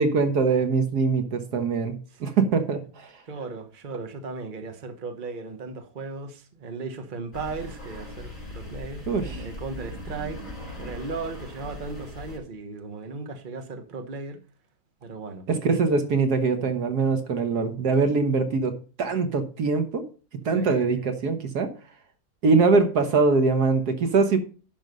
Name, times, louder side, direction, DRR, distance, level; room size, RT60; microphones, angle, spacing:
voice 1, 0.0-2.0 2.2-3.1 9.1-9.4 15.5-20.1 20.5-21.7 22.4-24.4, right 4 dB, 70° right, 1.8 m, -23 dB
voice 2, 3.3-9.0 9.3-10.4 10.7-14.4 15.0-15.4 20.5-21.1, right 4 dB, 35° right, 1.3 m, -36 dB
sound 1, 7.3-12.4, left 1 dB, 30° left, 4.4 m, -39 dB
11.0 x 5.6 x 5.3 m
omnidirectional pair, 1.7 m